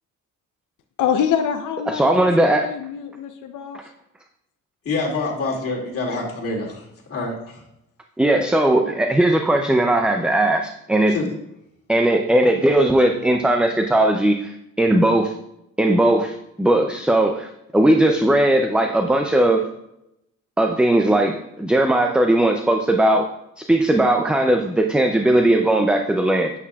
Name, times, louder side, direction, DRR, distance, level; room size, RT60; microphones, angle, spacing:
voice 1, 1.0-3.8, left 8 dB, 70° left, 5 dB, 0.7 m, -25 dB
voice 2, 1.9-2.7 8.2-11.2 11.9-15.3 15.8-17.5 17.7-19.7 20.6-23.3 23.7-26.5, right 1 dB, 5° right, 4 dB, 0.4 m, -18 dB
voice 3, 4.8-7.6 11.1-11.3, left 3 dB, 45° left, -3 dB, 2.3 m, -26 dB
8.3 x 8.1 x 2.3 m, 0.82 s
cardioid pair, 125°, 32 cm